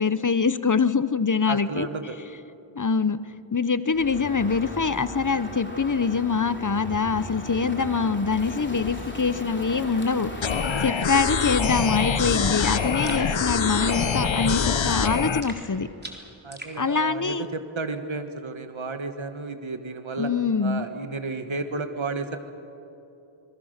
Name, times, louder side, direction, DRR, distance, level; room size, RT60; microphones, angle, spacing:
voice 1, 0.0-1.9 2.8-3.2 3.5-10.3 10.8-15.9 16.8-17.5 20.2-20.9, left 5 dB, 40° left, 14 dB, 0.8 m, -24 dB
voice 2, 1.5-2.2 16.4-20.3 20.6-22.4, right 3 dB, 75° right, 7 dB, 1.5 m, -32 dB
Crow, 3.9-15.4, left 1 dB, 25° left, 3.2 m, -37 dB
sound 1, 10.4-15.4, left 6 dB, 70° left, 0.9 m, -25 dB
sound 2, 13.1-13.3 15.4-16.8, right 1 dB, 20° right, 3.6 m, -40 dB
26.0 x 22.0 x 6.6 m, 2.9 s
wide cardioid pair, 50°, 48 cm